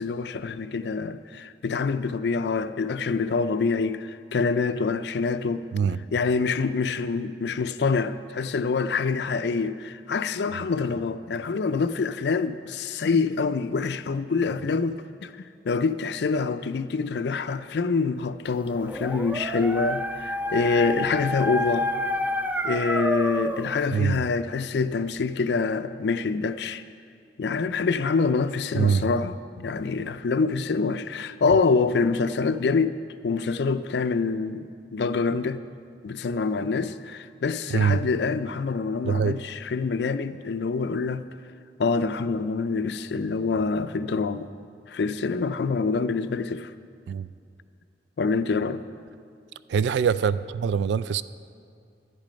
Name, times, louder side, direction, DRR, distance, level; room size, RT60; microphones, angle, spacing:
voice 1, 0.0-5.7 6.1-21.9 22.6-26.8 27.4-33.0 33.2-35.6 36.0-41.2 41.8-44.5 44.9-46.7 48.2-48.8, left 4 dB, 70° left, 0.4 m, -26 dB
Dog, 18.7-23.7, left 1 dB, 10° right, 0.4 m, -28 dB
voice 2, 23.9-24.2 28.7-29.1 37.7-38.1 39.0-39.4 47.1-47.3 49.7-51.2, right 6 dB, 80° right, 0.3 m, -23 dB
10.5 x 10.5 x 5.2 m
head